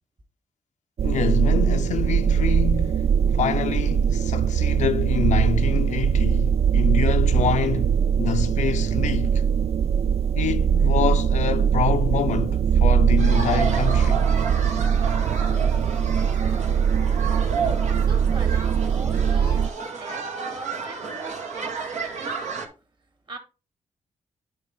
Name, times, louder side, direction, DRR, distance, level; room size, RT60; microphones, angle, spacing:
voice 1, 1.0-9.5 10.4-14.3, left 8 dB, 80° left, 0.7 m, -27 dB
sound 1, 1.0-19.7, right 7 dB, 55° right, 0.4 m, -21 dB
sound 2, 13.2-22.7, right 5 dB, 75° right, 1.9 m, -32 dB
voice 2, 17.6-22.7 23.3-23.4, right 3 dB, 40° right, 2.2 m, -41 dB
9.0 x 3.6 x 5.2 m
cardioid pair, 70°, 12 cm